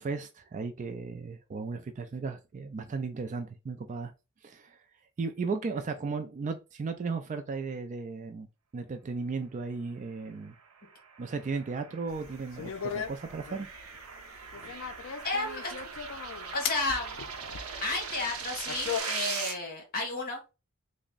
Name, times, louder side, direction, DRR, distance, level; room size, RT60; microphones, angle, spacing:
voice 1, 0.0-4.1 4.4-4.8 5.2-8.5 8.7-10.5 11.2-13.7, right 4 dB, 35° right, 0.3 m, -35 dB
sound 1, 10.7-19.5, right 6 dB, 75° right, 0.7 m, -40 dB
sound 2, 12.1-19.0, left 7 dB, 60° left, 0.4 m, -38 dB
voice 2, 15.2-15.7 16.4-17.2 17.8-20.5, left 2 dB, 45° left, 1.2 m, -32 dB
3.4 x 2.1 x 3.8 m
head